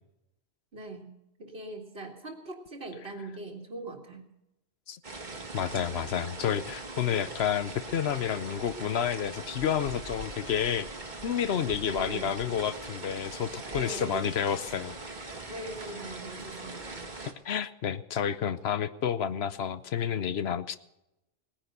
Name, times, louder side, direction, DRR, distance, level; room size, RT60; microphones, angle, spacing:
voice 1, 0.7-1.1 1.4-4.3 11.8-12.3 13.6-14.2 15.5-17.1, right 2 dB, 65° right, -1 dB, 2.3 m, -41 dB
sound 1, 5.0-17.3, right 2 dB, 45° right, 1.7 m, -41 dB
voice 2, 5.5-10.9 11.2-15.0 17.4-20.8, left 8 dB, 70° left, 14 dB, 0.9 m, -30 dB
18.5 x 10.0 x 6.6 m, 0.90 s
omnidirectional pair, 1.1 m